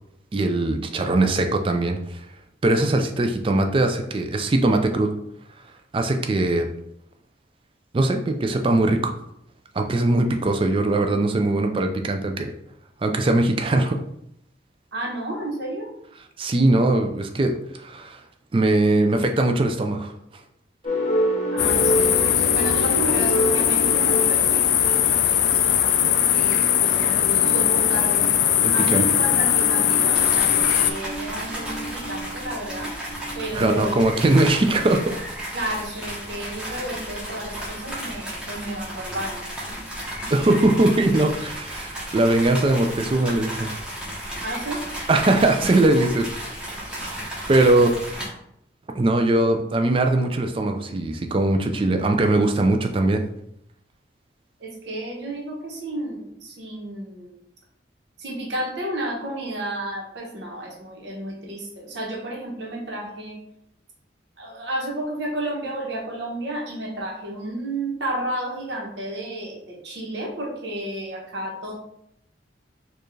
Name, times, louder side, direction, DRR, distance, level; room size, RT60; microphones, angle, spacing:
voice 1, 0.3-2.0 2.6-5.1 5.9-6.7 7.9-9.1 9.8-12.5 13.0-14.0 16.4-17.5 17.8-18.2 18.5-20.1 28.6-29.0 33.5-35.1 40.3-43.7 45.1-46.3 46.6-46.7 47.2-47.9 48.9-53.2, right 2 dB, 30° right, 5 dB, 0.4 m, -20 dB
voice 2, 14.9-15.9 21.5-26.0 26.3-28.4 28.7-32.9 33.3-34.0 35.5-39.8 40.2-40.3 44.4-44.9 47.7-47.9 54.6-57.4 58.2-63.4 64.4-71.7, right 1 dB, 70° right, -1 dB, 1.0 m, -32 dB
sound 1, 20.8-34.2, equal, 40° left, 0.8 m, -30 dB
sound 2, 21.6-30.9, left 10 dB, 70° left, 0.3 m, -20 dB
sound 3, 30.1-48.3, equal, 5° right, 1.0 m, -34 dB
4.6 x 2.4 x 3.1 m, 0.76 s
head